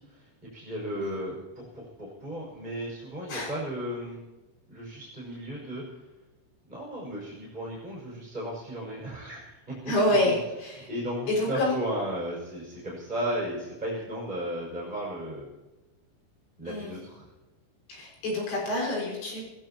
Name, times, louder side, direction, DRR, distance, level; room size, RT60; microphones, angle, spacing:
voice 1, 0.0-4.2 4.7-6.1 6.7-9.9 10.2-10.3 10.9-15.5 16.6-17.3, equal, 10° right, -6 dB, 5.6 m, -35 dB
voice 2, 9.9-10.9 11.3-11.7 16.7-16.9 17.9-19.4, left 1 dB, 80° left, -3 dB, 8.6 m, -27 dB
27.0 x 16.5 x 3.0 m, 1.1 s
omnidirectional pair, 5.4 m